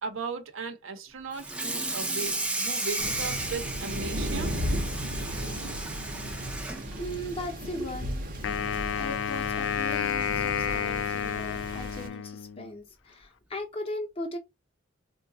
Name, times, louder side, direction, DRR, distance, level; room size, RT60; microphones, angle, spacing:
voice 1, 0.0-4.6, right 4 dB, 90° right, 0.7 m, -37 dB
Water tap faucet / Sink (filling or washing), 1.3-8.0 8.4-8.6 9.0-9.1 9.5-9.6 10.7-10.8 11.3-11.5, right 2 dB, 5° right, 0.4 m, -34 dB
Thunder, 3.0-12.1, equal, 45° right, 0.7 m, -35 dB
voice 2, 7.0-8.2 9.0-14.4, left 1 dB, 30° left, 0.7 m, -38 dB
Wind instrument woodwind instrument, 8.4-12.7, left 8 dB, 75° left, 0.3 m, -30 dB
3.8 x 2.2 x 2.6 m
head